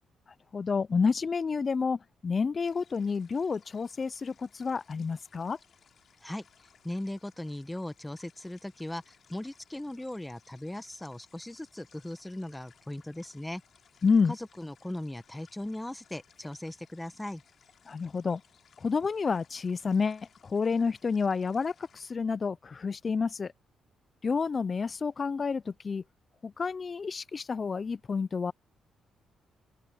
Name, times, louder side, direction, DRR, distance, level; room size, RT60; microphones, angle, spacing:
voice 1, 0.5-5.6 14.0-14.4 17.9-18.4 18.8-23.5 24.2-26.0 26.4-28.5, left 5 dB, 35° left, 0.4 m, -29 dB
sound 1, 2.6-22.1, left 7 dB, 55° left, 6.4 m, -63 dB
voice 2, 6.8-13.6 14.3-17.4, left 1 dB, 10° left, 1.4 m, -38 dB
open air
cardioid pair, 90°, 0 cm